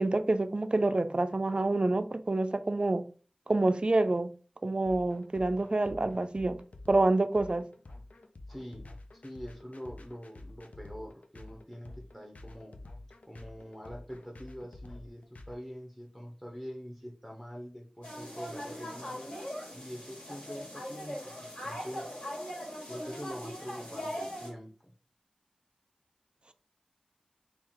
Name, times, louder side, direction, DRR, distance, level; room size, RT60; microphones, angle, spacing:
voice 1, 0.0-3.0 3.5-4.3 4.6-6.6 6.9-7.6, right 2 dB, 45° right, 0.4 m, -27 dB
sound 1, 4.9-15.5, left 2 dB, 80° left, 0.5 m, -49 dB
voice 2, 8.5-12.8 13.3-19.3 19.7-22.1 22.9-24.9, equal, 10° left, 0.9 m, -45 dB
sound 2, 18.0-24.5, equal, 55° left, 2.0 m, -40 dB
4.5 x 2.4 x 3.6 m
wide cardioid pair, 55°, 2 cm